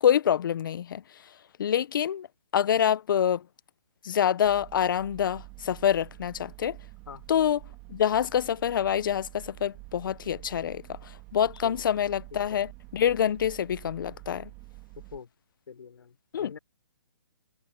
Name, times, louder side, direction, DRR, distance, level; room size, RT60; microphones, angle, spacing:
voice 1, 0.0-1.0 1.6-2.3 2.5-3.4 4.0-6.8 7.3-7.6 7.9-14.5 16.3-16.5, left 9 dB, 55° left, 0.9 m, -26 dB
sound 1, 4.4-15.2, right 25 dB, 25° right, 2.7 m, -48 dB
voice 2, 7.1-7.4 11.6-11.9 12.3-12.6 14.9-15.3 15.7-16.6, left 6 dB, 75° left, 4.4 m, -45 dB
hypercardioid pair, 155°, 13 cm